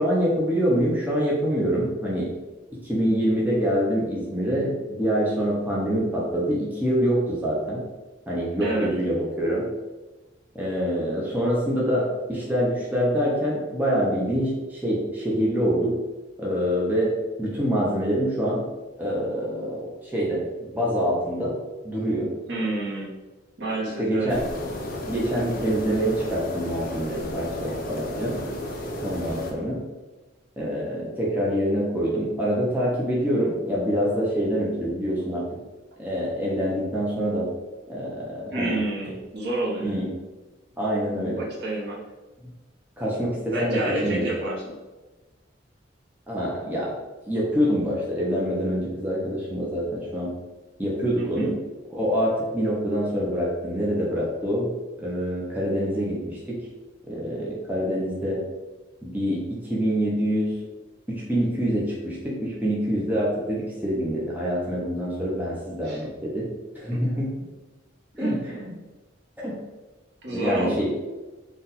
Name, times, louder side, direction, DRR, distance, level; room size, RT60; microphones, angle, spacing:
voice 1, 0.0-2.3 2.8-7.8 8.3-9.7 10.5-15.9 16.4-17.1 17.4-18.6 19.0-21.5 21.8-22.3 24.0-24.4 25.1-28.3 29.0-29.8 30.6-35.4 36.0-37.5 37.9-38.7 39.8-40.1 40.8-41.4 43.0-44.3 46.3-46.9 47.3-50.3 50.8-51.5 51.9-54.7 55.0-56.6 57.1-58.4 59.0-60.5 61.1-66.5 66.8-67.3 68.2-68.7 69.4-69.5 70.3-70.9, equal, 10° right, -5 dB, 0.7 m, -25 dB
voice 2, 8.6-8.9 22.5-23.1 23.6-24.3 38.5-39.9 41.4-42.0 43.5-44.7 51.2-51.5 65.8-66.1 66.9-67.3 68.2-68.4 70.2-70.8, right 2 dB, 60° right, -5 dB, 1.1 m, -29 dB
sound 1, 24.3-29.5, left 1 dB, 50° left, 0.7 m, -33 dB
4.1 x 2.5 x 4.0 m, 1.2 s
head